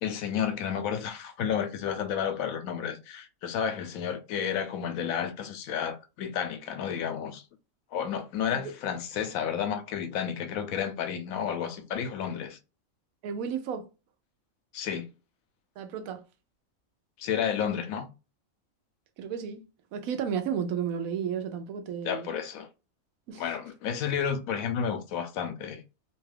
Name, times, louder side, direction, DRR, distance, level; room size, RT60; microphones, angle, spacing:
voice 1, 0.0-7.4 7.9-12.6 14.7-15.1 17.2-18.1 22.0-22.7 23.4-25.8, left 8 dB, 85° left, 1.0 m, -31 dB
voice 2, 13.2-13.8 15.8-16.2 19.2-19.6 19.9-22.3 23.3-23.4, right 7 dB, 85° right, 1.0 m, -32 dB
2.9 x 2.3 x 3.2 m
omnidirectional pair, 1.4 m